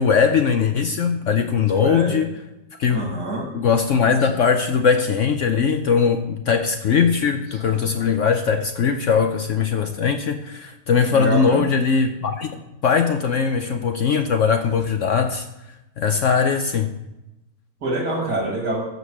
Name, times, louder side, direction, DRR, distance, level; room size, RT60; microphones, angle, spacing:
voice 1, 0.0-2.3 2.8-3.1 3.5-15.5 16.0-16.9, left 6 dB, 60° left, 7 dB, 0.8 m, -20 dB
voice 2, 1.7-2.3 2.9-3.6 11.1-11.7 17.8-18.9, right 2 dB, 75° right, 0 dB, 3.1 m, -26 dB
14.5 x 5.3 x 6.4 m, 0.94 s
omnidirectional pair, 1.8 m